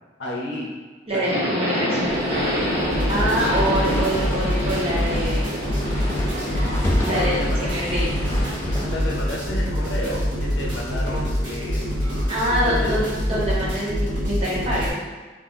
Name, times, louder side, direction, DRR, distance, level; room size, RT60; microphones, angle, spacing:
voice 1, 0.2-0.7 1.1-1.9 2.7-3.1 7.1-7.7 8.9-12.0 12.6-13.0, left 1 dB, 70° left, -3 dB, 0.6 m, -31 dB
voice 2, 1.1-2.3 3.1-5.5 7.0-8.2 12.0-15.0, equal, 30° right, -6 dB, 0.7 m, -25 dB
Subway metro underground, 1.2-8.8, equal, 55° right, 1.3 m, -27 dB
sound 1, 2.0-13.7, left 1 dB, 15° left, 0.3 m, -32 dB
sound 2, 2.9-14.9, equal, 80° right, 1.2 m, -25 dB
2.4 x 2.1 x 3.7 m, 1.4 s
head